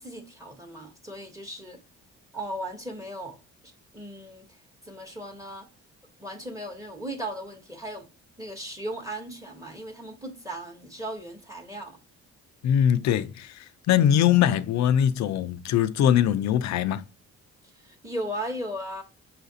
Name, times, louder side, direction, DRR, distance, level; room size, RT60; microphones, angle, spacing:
voice 1, 0.0-1.8 2.3-3.4 3.9-4.4 4.8-5.7 6.2-8.1 8.4-12.0 17.8-19.0, right 1 dB, 10° right, 1.0 m, -36 dB
voice 2, 12.6-13.5 13.9-17.0, left 10 dB, 65° left, 0.5 m, -22 dB
5.7 x 2.5 x 2.6 m
cardioid pair, 90°, 30 cm